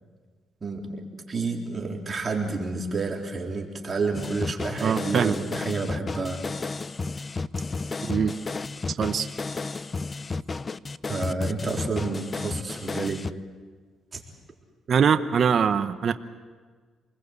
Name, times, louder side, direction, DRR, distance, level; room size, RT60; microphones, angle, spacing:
voice 1, 0.6-1.0 1.3-6.4 11.1-13.2 14.1-14.2, right 3 dB, 35° right, 0 dB, 3.8 m, -30 dB
sound 1, 4.1-13.3, left 3 dB, 30° left, 0.7 m, -32 dB
voice 2, 4.8-5.3 8.0-8.3 9.0-9.3 14.9-16.1, right 7 dB, 55° right, 9 dB, 1.0 m, -22 dB
28.0 x 21.0 x 8.2 m, 1.5 s
cardioid pair, 90°, 0 cm